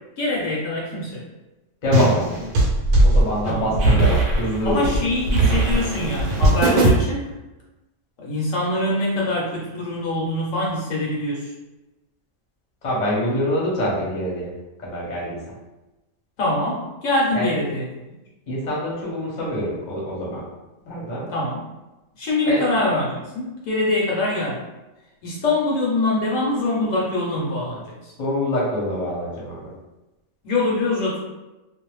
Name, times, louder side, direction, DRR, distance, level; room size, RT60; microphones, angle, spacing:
voice 1, 0.2-1.2 3.4-3.8 4.6-7.3 8.2-11.5 16.4-17.9 21.3-21.6 22.2-24.6 25.2-28.1 30.4-31.2, left 2 dB, 70° left, -4 dB, 1.0 m, -24 dB
voice 2, 1.8-2.5 3.0-5.0 12.8-14.5 14.8-15.6 17.3-17.5 18.5-20.4 20.8-21.3 22.4-22.6 28.2-29.7, equal, 40° left, -5 dB, 0.8 m, -25 dB
sound 1, 1.9-6.9, right 2 dB, 85° right, 1.0 m, -18 dB
2.5 x 2.1 x 3.0 m, 1.0 s
omnidirectional pair, 1.4 m